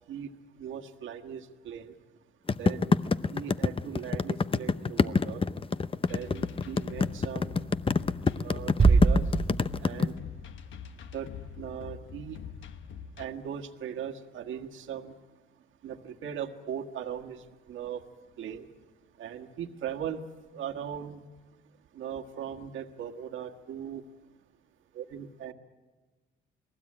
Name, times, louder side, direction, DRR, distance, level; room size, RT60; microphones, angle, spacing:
voice 1, 0.5-2.0 2.5-3.0 3.3-5.4 6.1-7.7 8.3-9.2 9.8-10.1 11.1-11.3 11.5-12.4 13.2-15.1 15.8-18.0 18.4-18.7 19.2-20.2 20.5-21.2 21.9-24.0 24.9-25.5, right 9 dB, 75° right, 4 dB, 1.7 m, -39 dB
sound 1, 2.5-10.1, left 4 dB, 25° left, 0.7 m, -25 dB
sound 2, 6.1-13.3, left 7 dB, 75° left, 1.3 m, -44 dB
sound 3, 8.8-10.2, right 4 dB, 30° right, 0.9 m, -23 dB
28.5 x 19.5 x 8.7 m, 1.3 s
cardioid pair, 90°, 20 cm